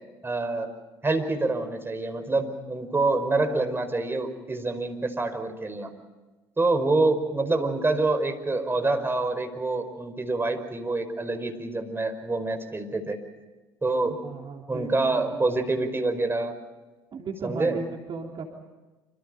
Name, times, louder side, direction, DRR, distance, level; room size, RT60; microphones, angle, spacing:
voice 1, 0.2-0.7 1.0-5.9 6.6-13.2 13.8-14.1 14.7-16.6 17.4-17.8, right 2 dB, 20° right, 7 dB, 5.1 m, -26 dB
voice 2, 14.2-15.9 17.1-18.4, right 5 dB, 40° right, 1 dB, 3.5 m, -36 dB
27.5 x 27.5 x 5.2 m, 1.2 s
hypercardioid pair, 60°, 12 cm